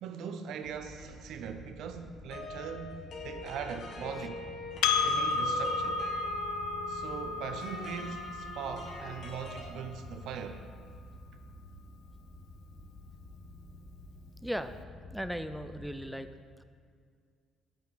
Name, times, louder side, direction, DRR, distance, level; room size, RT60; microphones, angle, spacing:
voice 1, 0.0-4.4 5.0-6.0 6.9-10.6, right 7 dB, 70° right, 8 dB, 0.5 m, -40 dB
sound 1, 0.6-16.1, left 1 dB, 25° left, 1.0 m, -49 dB
sound 2, 2.3-9.7, left 3 dB, 60° left, 1.4 m, -44 dB
Percussion, 4.8-9.6, left 4 dB, 90° left, 0.4 m, -32 dB
voice 2, 15.1-16.3, equal, ahead, 10 dB, 0.3 m, -36 dB
8.1 x 4.9 x 4.1 m, 2.1 s
cardioid pair, 110°, 0 cm